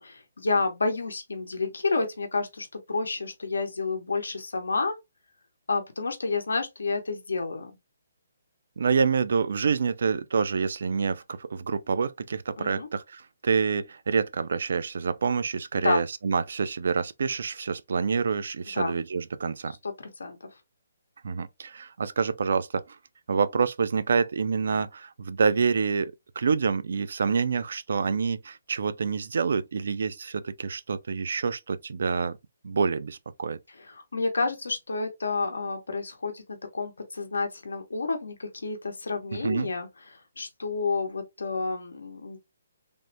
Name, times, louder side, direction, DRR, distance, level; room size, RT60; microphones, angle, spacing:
voice 1, 0.0-4.9 5.7-7.7 12.6-12.9 15.8-16.0 18.7-19.0 19.7-20.4 33.9-42.4, left 3 dB, 90° left, 0.8 m, -30 dB
voice 2, 8.8-19.8 21.2-23.0 23.3-32.4 32.6-33.6 39.3-39.7, right 5 dB, 70° right, 0.4 m, -27 dB
3.4 x 2.1 x 2.6 m
hypercardioid pair, 155°, 0 cm